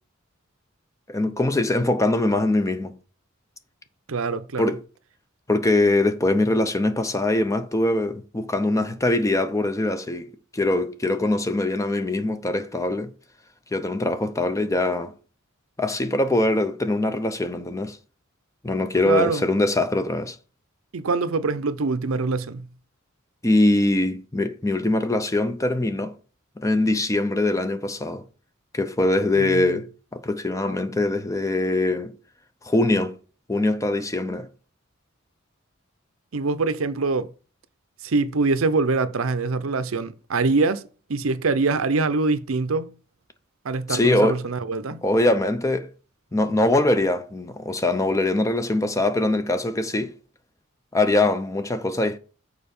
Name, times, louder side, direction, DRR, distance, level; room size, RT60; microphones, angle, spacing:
voice 1, 1.1-3.0 4.6-4.8 5.5-10.3 10.5-13.1 13.7-15.1 15.8-18.0 18.6-20.4 23.4-26.1 26.6-28.2 28.7-32.1 32.6-33.2 33.5-34.5 43.9-44.4 45.0-45.9 46.3-50.1 50.9-52.2, left 2 dB, 15° left, 0.6 m, -22 dB
voice 2, 4.1-4.7 19.0-19.4 20.9-22.7 29.3-29.8 36.3-37.3 38.0-42.9 43.6-45.0, right 3 dB, 85° right, 0.6 m, -24 dB
6.8 x 4.7 x 5.3 m
head